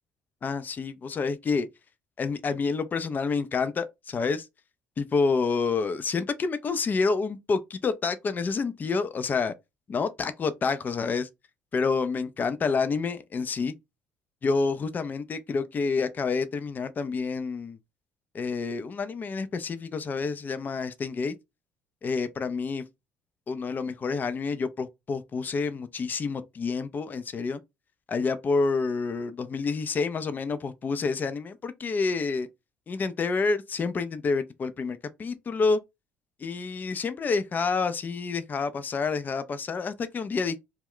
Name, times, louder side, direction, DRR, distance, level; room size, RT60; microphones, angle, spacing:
voice 1, 0.4-1.7 2.2-4.5 5.0-9.5 9.9-11.3 11.7-13.7 14.4-17.8 18.3-21.3 22.0-22.8 23.5-27.6 28.1-32.5 32.9-35.8 36.4-40.6, left 4 dB, 35° left, 0.4 m, -28 dB
2.3 x 2.1 x 3.5 m
hypercardioid pair, 60°, 5 cm